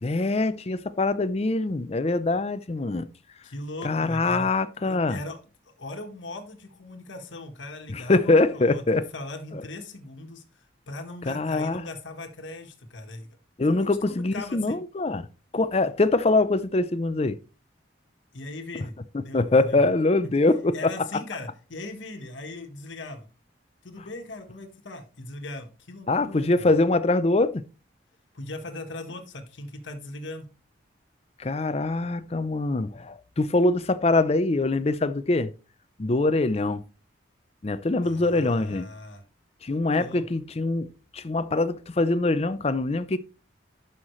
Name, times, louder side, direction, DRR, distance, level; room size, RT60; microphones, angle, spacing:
voice 1, 0.0-3.1 3.8-5.2 7.9-9.0 9.5-9.6 11.3-11.8 13.6-15.2 15.5-17.4 19.3-20.9 26.1-27.6 31.4-35.5 36.0-36.8 37.6-38.9 39.6-40.9 41.1-43.2, left 2 dB, 30° left, 0.5 m, -23 dB
voice 2, 3.4-4.5 4.8-5.4 5.8-8.8 9.1-10.4 10.9-13.3 13.6-14.8 18.3-19.8 20.7-23.3 23.8-26.7 28.3-30.5 38.0-39.2 40.0-40.2, left 2 dB, 75° left, 1.4 m, -39 dB
11.0 x 5.7 x 3.1 m
head